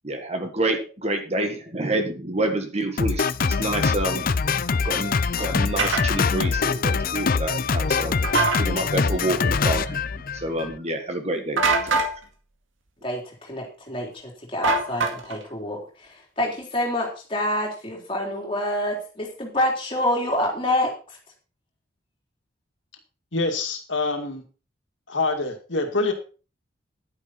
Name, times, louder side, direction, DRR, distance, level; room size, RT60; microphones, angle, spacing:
voice 1, 0.0-4.3 4.8-8.2 8.6-10.0 10.3-11.6 11.9-12.1, right 1 dB, 30° right, 5 dB, 1.8 m, -28 dB
Drum kit, 3.0-10.8, left 5 dB, 45° left, 0.5 m, -24 dB
sound 1, 5.8-6.0 8.2-8.6 11.6-12.1 14.6-15.4, right 3 dB, 75° right, 2.1 m, -22 dB
voice 2, 13.0-15.8 16.4-20.9, left 1 dB, 25° left, -1 dB, 3.6 m, -27 dB
voice 3, 23.3-24.4 25.1-26.1, left 3 dB, 65° left, 4 dB, 2.2 m, -25 dB
11.0 x 9.7 x 4.3 m, 0.36 s
head